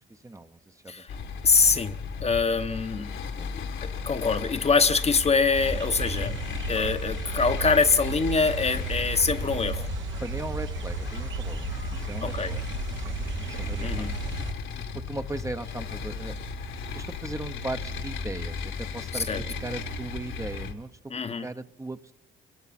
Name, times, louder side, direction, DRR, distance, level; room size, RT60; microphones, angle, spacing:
voice 1, 0.1-1.3 3.3-3.5 6.6-6.8 10.2-11.6 11.9-12.6 13.0-14.1 14.9-16.4 16.9-21.0 21.4-22.1, right 2 dB, 15° right, 0.9 m, -38 dB
sound 1, 1.1-20.7, left 5 dB, 75° left, 2.1 m, -35 dB
voice 2, 1.4-3.1 3.5-6.3 6.7-9.9 12.2-12.5 13.8-14.1 19.3-19.4 21.1-21.5, left 4 dB, 30° left, 1.0 m, -24 dB
sound 2, 5.5-14.5, right 5 dB, 75° right, 1.6 m, -34 dB
28.0 x 22.0 x 4.2 m
cardioid pair, 90°, 20 cm